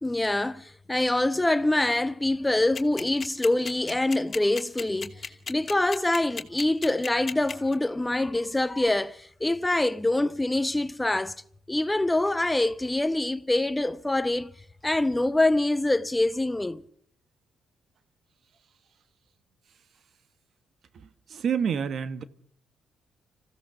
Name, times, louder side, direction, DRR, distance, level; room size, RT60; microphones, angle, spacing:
voice 1, 0.0-11.3 11.7-14.5 14.8-16.8, left 2 dB, 10° left, 0.8 m, -25 dB
sound 1, 2.7-7.7, left 5 dB, 35° left, 2.5 m, -34 dB
voice 2, 20.9-22.2, right 7 dB, 60° right, 1.5 m, -29 dB
27.0 x 16.0 x 7.2 m
cardioid pair, 90°, 0 cm